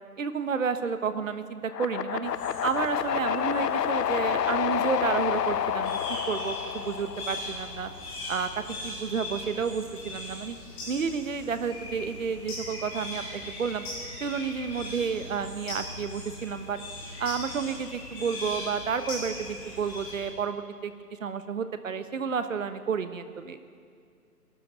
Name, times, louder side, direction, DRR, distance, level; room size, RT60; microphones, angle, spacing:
voice 1, 0.2-2.3 2.6-7.9 8.3-10.6 10.9-13.9 14.2-16.8 17.2-20.9 21.2-23.6, right 6 dB, 55° right, 10 dB, 1.1 m, -31 dB
sound 1, 1.7-7.8, left 9 dB, 85° left, 0.7 m, -29 dB
sound 2, 2.2-20.3, left 2 dB, 10° left, 3.2 m, -40 dB
18.5 x 12.5 x 5.6 m, 2.3 s
hypercardioid pair, 165°, 47 cm